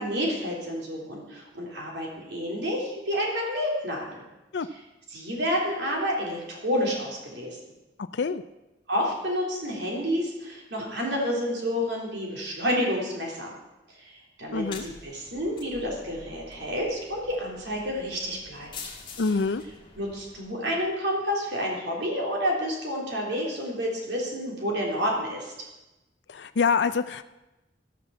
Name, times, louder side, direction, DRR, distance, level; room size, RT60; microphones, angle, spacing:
voice 1, 0.0-4.2 4.7-4.8 5.1-7.6 8.9-13.5 13.9-18.9 19.9-25.5, equal, 70° right, -2 dB, 3.3 m, -29 dB
voice 2, 14.5-14.9 19.2-19.6 26.3-27.2, left 5 dB, 70° left, 11 dB, 0.5 m, -25 dB
sound 1, 14.5-20.9, left 4 dB, 25° left, 1.6 m, -46 dB
14.5 x 5.9 x 7.0 m, 1.0 s
head